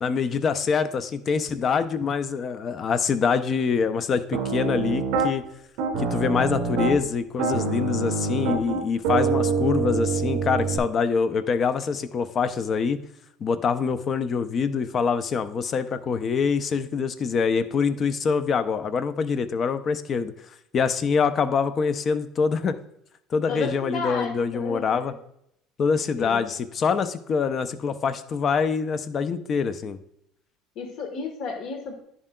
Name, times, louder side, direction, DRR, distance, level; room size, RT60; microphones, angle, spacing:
voice 1, 0.0-5.4 6.0-13.0 13.4-20.3 20.7-22.8 23.3-25.1 25.8-30.0, left 5 dB, 30° left, 12 dB, 0.4 m, -25 dB
Piano, 4.3-5.3 5.8-7.0 7.4-10.8, right 4 dB, 80° right, 1.8 m, -25 dB
voice 2, 23.5-25.2 26.2-26.5 30.7-32.0, left 4 dB, 45° left, 4 dB, 1.3 m, -32 dB
9.7 x 7.4 x 2.2 m, 0.75 s
cardioid pair, 170°, 0 cm